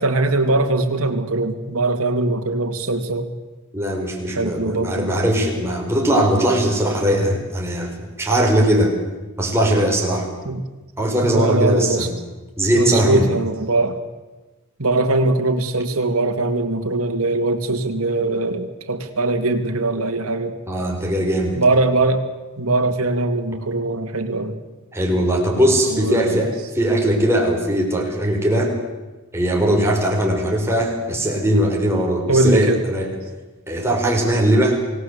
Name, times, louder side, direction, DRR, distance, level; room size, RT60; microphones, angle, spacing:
voice 1, 0.0-3.3 4.3-5.1 10.4-10.6 11.2-12.1 12.7-14.0 14.8-20.5 21.5-22.2 22.6-24.6 25.9-26.4 32.3-32.8, right 2 dB, 75° right, 5 dB, 2.5 m, -21 dB
voice 2, 3.7-9.0 9.4-10.3 11.0-12.2 12.6-13.2 20.7-21.6 24.9-28.7 29.3-33.1 33.7-34.8, right 1 dB, 10° right, 0 dB, 5.1 m, -19 dB
28.5 x 19.0 x 8.3 m, 1.2 s
head